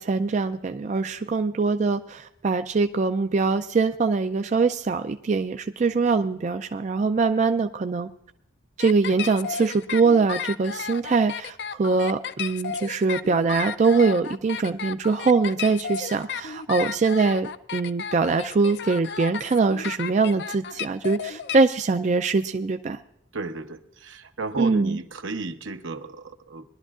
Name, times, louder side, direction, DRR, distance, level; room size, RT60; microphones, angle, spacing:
voice 1, 0.0-8.1 8.8-23.0 24.6-25.0, right 4 dB, 35° right, 7 dB, 0.3 m, -23 dB
sound 1, 8.8-21.6, left 7 dB, 60° left, 0.4 m, -33 dB
voice 2, 23.3-26.6, right 3 dB, 80° right, 7 dB, 0.9 m, -33 dB
21.5 x 11.5 x 2.4 m, 0.77 s
head